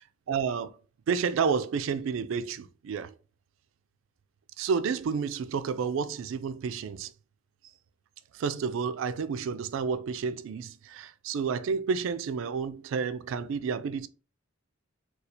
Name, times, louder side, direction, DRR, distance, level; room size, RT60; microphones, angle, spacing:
voice 1, 0.3-0.7 1.1-3.1 4.6-7.1 8.3-14.1, right 6 dB, 65° right, 0.3 m, -30 dB
4.2 x 2.3 x 2.5 m
head